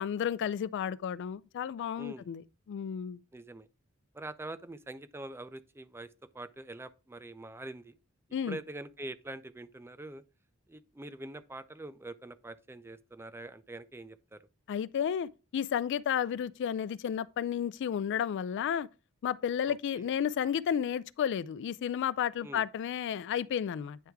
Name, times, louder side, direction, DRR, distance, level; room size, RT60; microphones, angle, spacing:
voice 1, 0.0-2.4 2.7-3.2 8.3-8.6 14.7-18.9 19.2-24.0, left 8 dB, 55° left, 0.3 m, -32 dB
voice 2, 3.3-3.7 4.1-6.1 6.3-7.9 8.5-10.2 10.7-14.4 19.7-20.1 22.4-22.6, right 2 dB, 10° right, 0.4 m, -44 dB
9.3 x 3.4 x 4.6 m
head